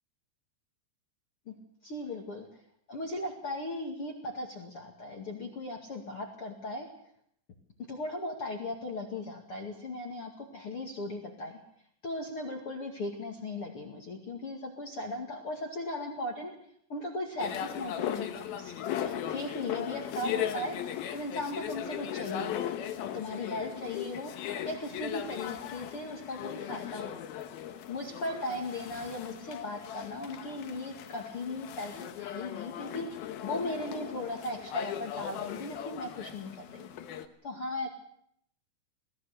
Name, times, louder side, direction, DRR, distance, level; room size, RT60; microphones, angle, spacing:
voice 1, 1.8-2.5 2.9-6.9 7.9-11.6 12.0-16.5 16.9-22.7 23.0-27.2 27.9-36.9 37.4-37.9, left 2 dB, 45° left, 2 dB, 1.8 m, -37 dB
sound 1, 17.4-37.3, left 10 dB, 70° left, 2.4 m, -38 dB
23.0 x 17.5 x 6.7 m, 0.69 s
omnidirectional pair, 5.9 m